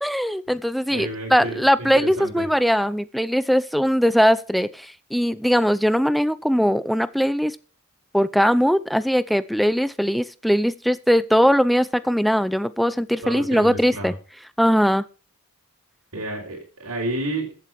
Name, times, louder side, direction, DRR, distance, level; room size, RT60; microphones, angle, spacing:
voice 1, 0.0-7.6 8.1-14.1 14.6-15.0, equal, ahead, 0.5 m, -20 dB
voice 2, 0.9-2.5 13.2-14.1 16.1-17.6, right 1 dB, 85° right, 3.8 m, -31 dB
14.5 x 8.3 x 4.7 m
head